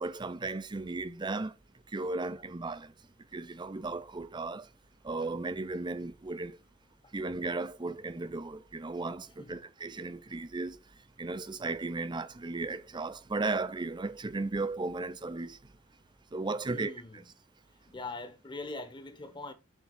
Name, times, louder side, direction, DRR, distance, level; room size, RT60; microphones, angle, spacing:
voice 1, 0.0-1.5 1.9-2.9 3.3-4.7 5.0-6.6 7.1-10.8 11.2-15.6 16.3-16.9, right 3 dB, 20° right, 0.5 m, -35 dB
voice 2, 16.7-17.3 17.9-19.5, left 2 dB, 20° left, 1.1 m, -42 dB
7.2 x 3.6 x 6.0 m
head